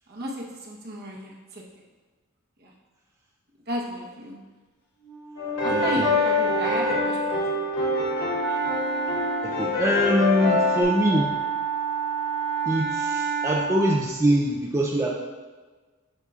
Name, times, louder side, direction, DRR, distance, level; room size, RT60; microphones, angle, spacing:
voice 1, 0.1-1.6 2.6-2.7 3.7-4.4 5.6-8.0 10.2-10.7, equal, 50° right, -1 dB, 1.0 m, -34 dB
Wind instrument woodwind instrument, 5.0-14.1, right 6 dB, 50° left, 1.2 m, -30 dB
sound 1, 5.4-10.8, left 4 dB, 85° left, 2.0 m, -25 dB
voice 2, 5.7-6.0 9.4-11.2 12.7-15.1, equal, 15° right, -2 dB, 0.4 m, -23 dB
8.0 x 5.7 x 2.4 m, 1.3 s
head